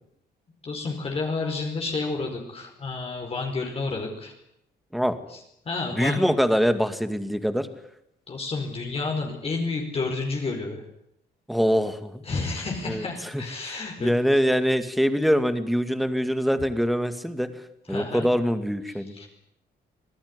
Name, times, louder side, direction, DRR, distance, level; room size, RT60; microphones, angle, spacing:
voice 1, 0.6-4.3 5.3-5.4 5.6-6.3 8.3-10.8 12.2-14.1 17.9-18.3 19.1-19.3, left 3 dB, 35° left, 1 dB, 4.9 m, -30 dB
voice 2, 5.9-7.7 11.5-12.2 12.9-13.0 13.3-17.5 17.9-19.2, equal, ahead, 10 dB, 2.2 m, -24 dB
26.0 x 18.0 x 9.8 m, 0.77 s
cardioid pair, 125°, 18 cm